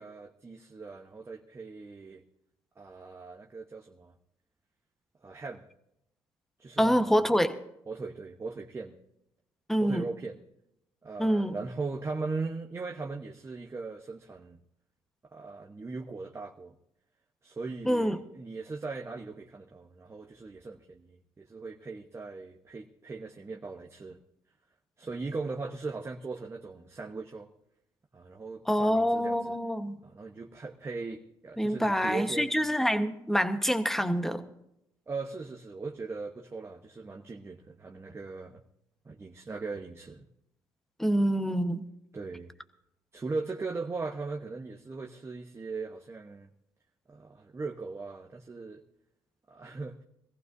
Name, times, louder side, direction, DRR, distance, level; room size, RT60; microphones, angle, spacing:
voice 1, 0.0-2.2 2.8-4.1 5.2-5.7 6.6-7.2 7.9-9.0 9.8-10.4 11.0-14.6 15.3-16.7 17.4-24.2 25.0-27.5 28.1-29.6 30.0-32.6 35.1-38.6 39.0-40.3 42.1-42.5 43.1-46.5 47.1-48.8 49.5-50.0, right 3 dB, 30° right, 2 dB, 1.1 m, -39 dB
voice 2, 6.8-7.5 9.7-10.1 11.2-11.5 17.8-18.2 28.7-30.0 31.6-34.4 41.0-41.8, equal, 5° left, 9 dB, 1.2 m, -26 dB
22.0 x 15.0 x 2.7 m, 0.81 s
supercardioid pair, 70°, 10 cm